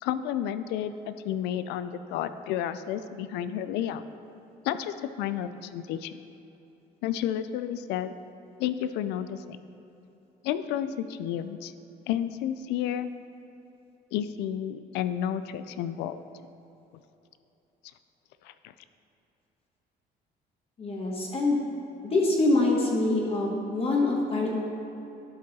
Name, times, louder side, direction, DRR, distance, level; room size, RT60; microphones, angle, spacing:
voice 1, 0.0-4.0 4.6-6.2 7.0-8.1 8.6-9.6 10.4-11.7 12.1-13.1 14.1-16.2 18.4-18.7, left 10 dB, 90° left, 12 dB, 0.4 m, -31 dB
voice 2, 20.8-21.6 22.0-24.5, left 2 dB, 35° left, -2 dB, 1.3 m, -25 dB
12.0 x 5.3 x 4.1 m, 3.0 s
cardioid pair, 110°, 17 cm